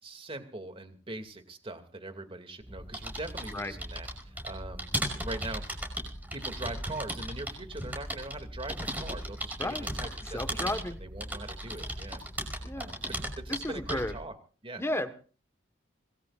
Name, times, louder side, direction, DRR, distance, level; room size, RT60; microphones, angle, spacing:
voice 1, 0.0-4.9 5.1-5.6 6.3-13.0 13.4-14.4 14.6-14.8, right 2 dB, 30° right, 7 dB, 2.5 m, -42 dB
sound 1, 2.6-14.2, right 1 dB, 10° right, 5.4 m, -37 dB
voice 2, 10.3-11.0 12.6-12.9 13.6-14.1 14.8-15.1, left 1 dB, 15° left, 9 dB, 1.4 m, -33 dB
26.0 x 19.5 x 2.5 m, 0.39 s
head